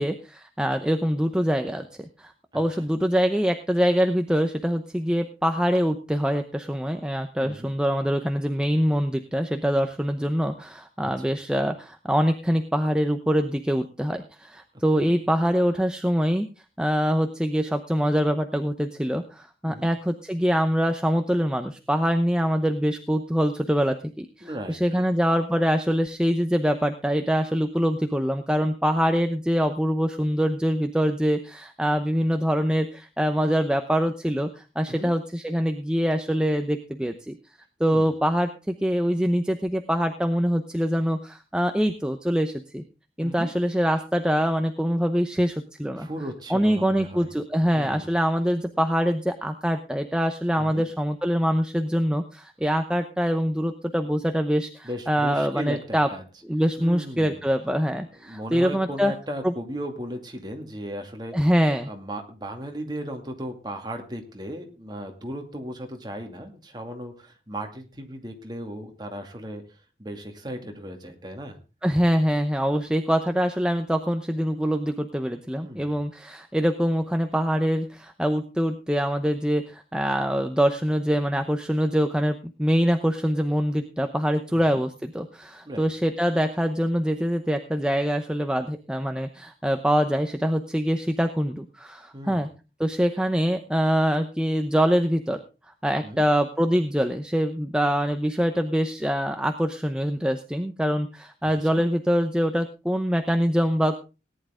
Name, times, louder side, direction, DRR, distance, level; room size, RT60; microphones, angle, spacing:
voice 1, 0.0-1.9 2.2-16.5 16.8-37.4 37.8-42.8 43.2-46.1 46.5-56.1 56.4-59.1 59.4-59.5 61.3-61.9 71.8-92.5 92.8-95.4 95.8-104.0, equal, 5° right, 6 dB, 0.7 m, -24 dB
voice 2, 2.5-2.8 7.4-7.7 11.0-11.3 15.0-15.1 19.7-19.9 24.4-25.1 34.9-35.1 37.8-38.1 43.2-43.5 46.0-47.3 47.7-48.2 50.6-50.8 54.8-56.2 56.8-57.4 58.2-61.3 61.9-69.6 70.0-71.6 75.6-76.0 84.5-84.8 85.7-85.8 92.1-92.4 96.0-96.2 101.4-101.8, equal, 25° right, 3 dB, 2.4 m, -36 dB
18.0 x 10.5 x 3.8 m, 0.31 s
head